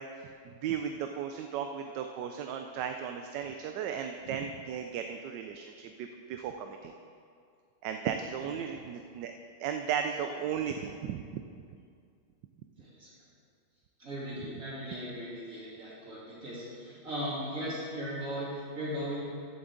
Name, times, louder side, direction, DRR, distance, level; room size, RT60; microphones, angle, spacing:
voice 1, 0.0-6.9 7.8-9.3 9.6-11.2, right 8 dB, 75° right, 5 dB, 1.2 m, -35 dB
voice 2, 12.8-13.1 14.0-19.2, equal, 45° right, -8 dB, 3.6 m, -38 dB
15.0 x 7.8 x 3.8 m, 2.3 s
omnidirectional pair, 2.0 m